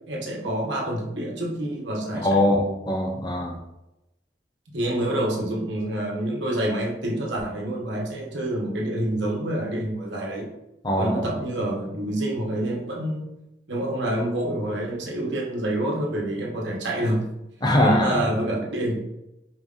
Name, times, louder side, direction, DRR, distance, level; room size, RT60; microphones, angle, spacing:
voice 1, 0.0-2.4 4.7-10.5 11.0-13.3 13.7-17.2 17.8-18.9, right 1 dB, 85° right, -1 dB, 1.0 m, -27 dB
voice 2, 2.2-3.6 10.8-11.2 17.6-18.3, left 1 dB, 25° left, 1 dB, 0.7 m, -22 dB
4.8 x 2.4 x 3.6 m, 0.90 s
head